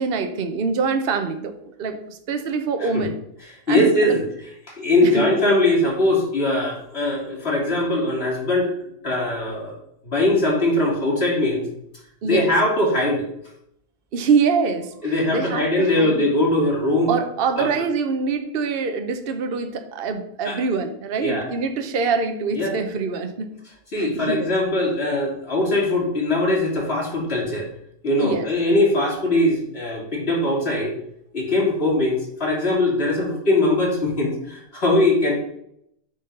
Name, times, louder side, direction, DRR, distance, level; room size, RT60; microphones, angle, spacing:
voice 1, 0.0-3.2 3.7-4.2 5.0-5.3 12.2-12.5 14.1-16.3 17.1-23.5 23.9-24.5 28.2-28.5, right 5 dB, 50° right, 8 dB, 1.0 m, -24 dB
voice 2, 3.7-4.2 4.7-8.7 9.0-9.8 10.0-11.6 12.2-13.2 15.0-17.1 17.6-17.7 20.4-20.6 21.2-21.5 22.5-22.8 23.9-27.7 28.0-31.0 31.3-35.3, left 1 dB, 50° left, -2 dB, 2.7 m, -21 dB
9.6 x 4.2 x 5.3 m, 0.74 s
omnidirectional pair, 1.3 m